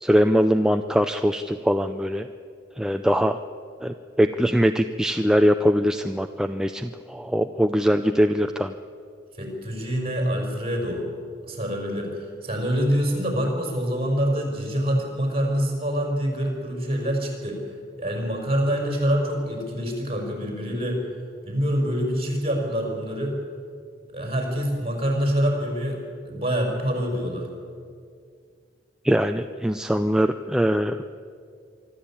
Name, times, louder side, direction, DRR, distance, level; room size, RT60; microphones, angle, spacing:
voice 1, 0.0-2.3 2.8-3.4 3.8-8.7 29.0-31.0, equal, 5° right, 7 dB, 0.4 m, -22 dB
voice 2, 9.4-11.1 11.4-17.6 18.0-21.0 21.4-23.4 24.1-27.5, equal, 35° right, 1 dB, 5.3 m, -26 dB
24.5 x 13.0 x 8.7 m, 2.3 s
head